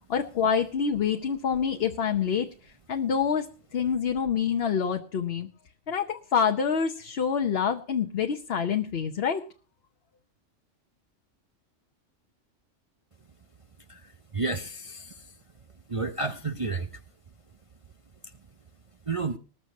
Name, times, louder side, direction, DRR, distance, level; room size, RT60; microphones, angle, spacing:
voice 1, 0.1-2.5 2.9-3.4 3.7-5.5 5.9-9.4, left 7 dB, 55° left, 5 dB, 1.0 m, -26 dB
voice 2, 14.3-15.1 15.9-16.9 19.1-19.4, right 3 dB, 35° right, 6 dB, 0.6 m, -30 dB
20.0 x 6.7 x 5.4 m, 0.40 s
omnidirectional pair, 1.4 m